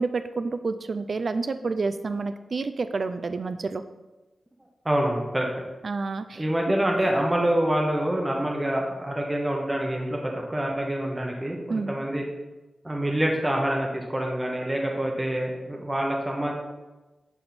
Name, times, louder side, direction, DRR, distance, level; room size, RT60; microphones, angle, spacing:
voice 1, 0.0-3.8 5.8-6.4 11.7-11.9, right 4 dB, 45° right, 10 dB, 0.3 m, -29 dB
voice 2, 4.8-5.6 6.4-12.2 12.8-16.5, right 1 dB, 10° right, 0 dB, 0.8 m, -26 dB
10.0 x 3.4 x 4.1 m, 1.1 s
wide cardioid pair, 170°, 0 cm